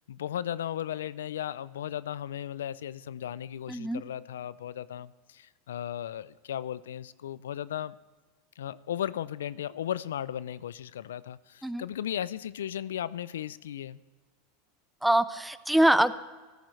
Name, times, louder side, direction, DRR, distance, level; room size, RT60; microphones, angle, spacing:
voice 1, 0.1-7.9 8.6-14.0, left 10 dB, 90° left, 18 dB, 0.3 m, -36 dB
voice 2, 3.7-4.0 11.6-11.8 15.0-16.1, right 1 dB, 5° right, 15 dB, 0.5 m, -24 dB
14.5 x 13.0 x 3.2 m, 1.4 s
hypercardioid pair, 110°, 0 cm